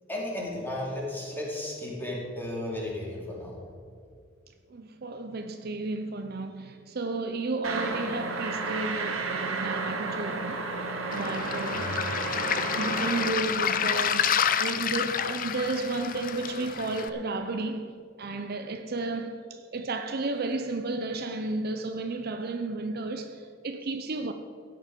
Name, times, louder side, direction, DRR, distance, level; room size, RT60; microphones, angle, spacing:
voice 1, 0.1-3.6 11.7-12.0, left 1 dB, 10° left, 2.8 m, -34 dB
voice 2, 4.7-10.7 11.1-12.0 12.8-24.3, right 3 dB, 50° right, 0.6 m, -33 dB
sound 1, 7.6-13.3, right 3 dB, 90° right, 1.5 m, -32 dB
Waves surf, 11.1-17.1, left 8 dB, 45° left, 0.5 m, -29 dB
14.0 x 8.9 x 5.2 m
head